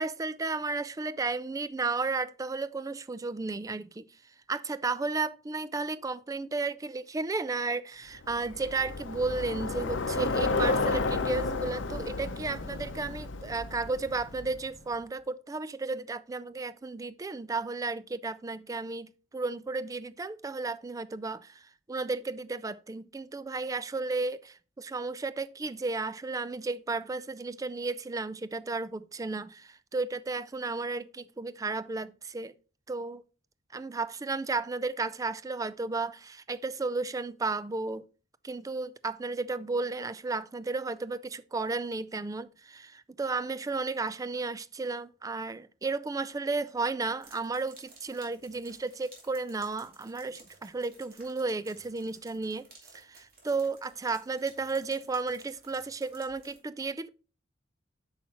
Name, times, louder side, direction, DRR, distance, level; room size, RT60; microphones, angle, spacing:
voice 1, 0.0-4.0 4.5-21.6 21.9-32.5 32.9-33.2 33.7-38.1 38.4-52.7 52.9-57.1, right 3 dB, 20° right, 0.3 m, -33 dB
Bicycle, 8.2-14.8, left 3 dB, 75° left, 0.7 m, -32 dB
sound 1, 47.2-56.6, right 3 dB, 55° right, 2.6 m, -56 dB
8.5 x 5.7 x 2.9 m
head